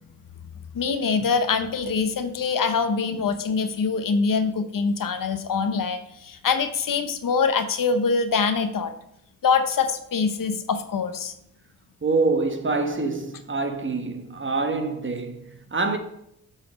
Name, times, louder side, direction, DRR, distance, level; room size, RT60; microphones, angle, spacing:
voice 1, 0.7-8.9 9.4-11.3, left 5 dB, 70° left, 0.8 m, -24 dB
voice 2, 12.0-16.0, right 3 dB, 35° right, 1.1 m, -26 dB
8.0 x 4.1 x 5.2 m
cardioid pair, 65°, 35 cm